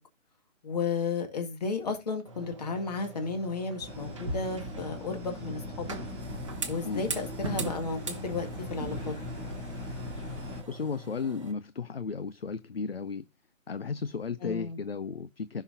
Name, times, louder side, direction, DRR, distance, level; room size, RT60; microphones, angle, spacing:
voice 1, 0.6-6.0 6.7-9.1 14.4-14.8, left 4 dB, 30° left, 1.9 m, -33 dB
sound 1, 2.2-11.5, right 3 dB, 25° right, 0.9 m, -41 dB
sound 2, 3.8-10.6, left 1 dB, 5° left, 0.8 m, -39 dB
voice 2, 10.7-13.2 13.7-15.6, left 5 dB, 50° left, 0.5 m, -34 dB
15.5 x 5.8 x 2.6 m
hypercardioid pair, 170°, 41 cm